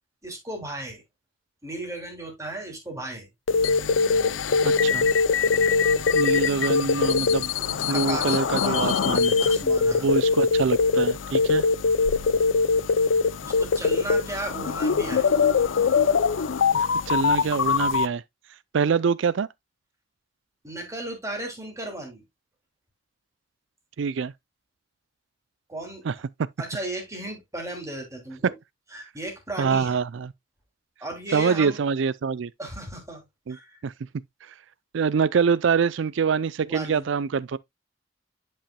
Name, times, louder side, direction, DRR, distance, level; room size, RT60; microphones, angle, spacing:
voice 1, 0.2-1.0 1.6-3.3 7.9-8.9 9.4-10.1 13.4-15.3 20.6-22.2 25.7-26.1 26.6-28.5 28.9-30.0 31.0-31.8 32.6-33.2 33.5-33.8 36.6-37.1, right 1 dB, 15° right, 2.8 m, -35 dB
sound 1, 3.5-18.1, left 5 dB, 90° left, 0.5 m, -22 dB
voice 2, 4.6-5.1 6.1-9.4 10.0-11.7 16.7-18.2 18.7-19.5 24.0-24.3 26.1-26.2 29.6-30.3 31.3-32.5 33.5-33.6 33.8-33.9 34.5-34.6 34.9-37.6, right 5 dB, 70° right, 0.4 m, -25 dB
10.0 x 5.5 x 2.2 m
head